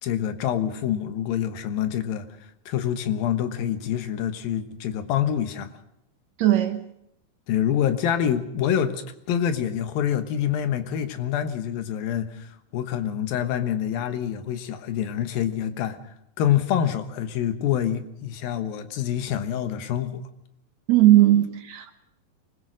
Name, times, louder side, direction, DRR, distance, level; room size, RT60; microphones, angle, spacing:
voice 1, 0.0-2.3 2.7-5.7 7.5-16.0 16.4-20.2, left 10 dB, 85° left, 3.1 m, -26 dB
voice 2, 6.4-6.8 20.9-21.9, right 14 dB, 65° right, 2.0 m, -18 dB
25.0 x 20.5 x 6.4 m
omnidirectional pair, 4.1 m